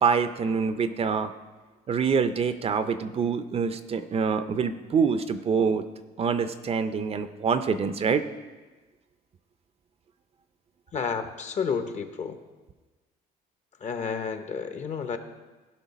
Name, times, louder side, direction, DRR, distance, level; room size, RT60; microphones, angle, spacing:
voice 1, 0.0-1.3 1.9-5.8 6.2-8.2, right 6 dB, 35° right, 10 dB, 0.5 m, -25 dB
voice 2, 10.9-12.4 13.8-15.2, left 6 dB, 45° left, 8 dB, 0.9 m, -31 dB
15.5 x 5.5 x 4.1 m, 1.3 s
cardioid pair, 110°, 17 cm